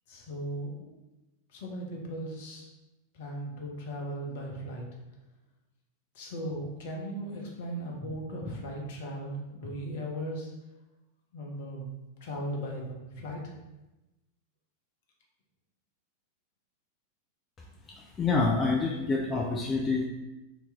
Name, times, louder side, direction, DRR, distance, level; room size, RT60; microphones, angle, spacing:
voice 1, 0.1-1.0 1.5-2.7 3.1-4.8 6.1-10.5 11.3-11.9 12.2-13.5, equal, 55° left, -1 dB, 0.8 m, -37 dB
voice 2, 17.9-20.1, left 3 dB, 20° left, 0 dB, 0.3 m, -27 dB
2.9 x 2.8 x 3.4 m, 1.0 s
figure-of-eight pair, 90°, 0 cm